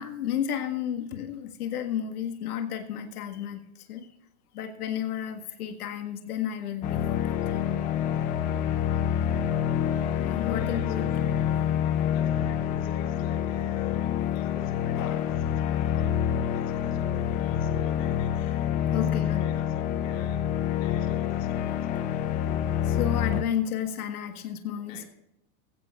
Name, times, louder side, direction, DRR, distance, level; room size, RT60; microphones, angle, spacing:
voice 1, 0.0-3.6 3.9-4.1 4.5-7.8 10.2-11.1 11.5-11.6 15.0-15.3 18.9-19.4 22.9-25.1, left 9 dB, 85° left, 5 dB, 1.8 m, -32 dB
sound 1, 6.8-23.4, left 10 dB, 20° left, 0.5 m, -27 dB
voice 2, 10.5-11.3 12.1-18.7 19.1-20.5 20.8-22.1 24.9-25.1, left 7 dB, 60° left, 3 dB, 3.4 m, -47 dB
18.5 x 16.0 x 2.5 m, 0.86 s
supercardioid pair, 150°, 43 cm